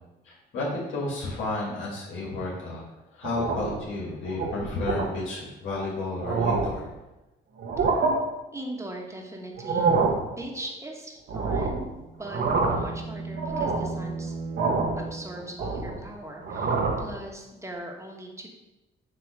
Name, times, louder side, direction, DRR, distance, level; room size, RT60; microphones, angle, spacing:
voice 1, 0.2-2.8 3.1-6.9, left 2 dB, 75° left, -4 dB, 2.0 m, -32 dB
sound 1, 3.2-3.8 4.3-4.5 4.9-5.1 5.7-5.8 6.1-6.8 7.6-8.1 9.5-10.2 11.3-11.8 12.2-12.9 13.4-13.9 14.6-15.0 15.4-16.0 16.4-17.1, right 4 dB, 65° right, 1.3 m, -26 dB
voice 2, 8.5-11.9 12.2-14.3 15.0-18.5, right 1 dB, 15° right, 1 dB, 1.5 m, -40 dB
sound 2, 11.8-15.8, right 3 dB, 35° right, 0.9 m, -36 dB
7.5 x 3.0 x 6.1 m, 1.0 s
cardioid pair, 90°, 20 cm